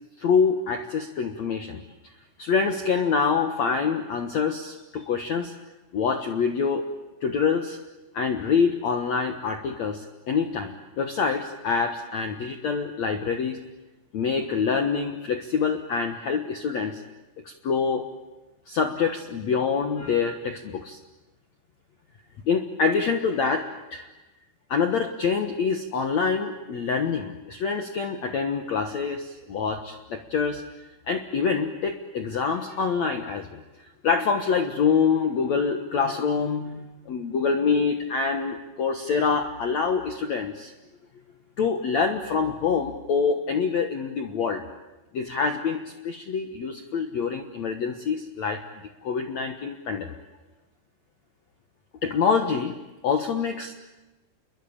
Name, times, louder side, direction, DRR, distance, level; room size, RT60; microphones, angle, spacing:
voice 1, 0.2-1.8 2.4-5.5 5.9-6.8 7.2-7.8 8.1-13.6 14.1-17.0 17.4-18.0 18.7-21.0 22.4-24.1 24.7-30.6 31.1-33.6 34.0-40.7 41.6-44.7 45.1-48.6 49.0-50.1 52.0-52.7 53.0-53.7, left 5 dB, 70° left, 6 dB, 1.7 m, -26 dB
29.0 x 22.5 x 8.8 m, 1.1 s
omnidirectional pair, 5.2 m